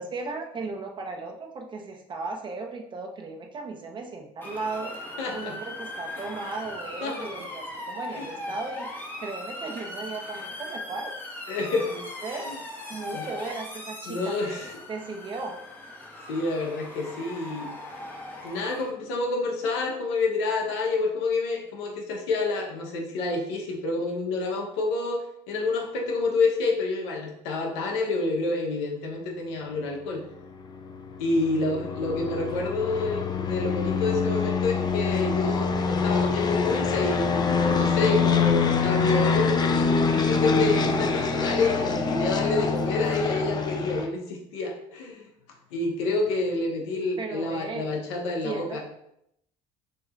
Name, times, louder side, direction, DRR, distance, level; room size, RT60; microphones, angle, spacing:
voice 1, 0.0-4.9 5.3-8.9 9.2-11.1 11.9-12.5 12.9-15.6 47.2-47.9 48.4-48.8, right 3 dB, 35° right, 2 dB, 0.9 m, -36 dB
Motor vehicle (road) / Siren, 4.4-18.9, left 1 dB, 15° left, 1.2 m, -39 dB
voice 2, 5.2-5.6 7.0-7.3 8.2-8.3 11.5-12.0 12.3-12.6 13.1-13.3 14.1-14.7 16.3-17.7 18.4-30.2 31.2-45.2 45.7-48.8, left 3 dB, 85° left, 1 dB, 1.0 m, -28 dB
sound 1, 30.7-44.1, left 5 dB, 30° left, 0.5 m, -25 dB
6.4 x 3.0 x 2.5 m, 0.78 s
supercardioid pair, 90°, 14 cm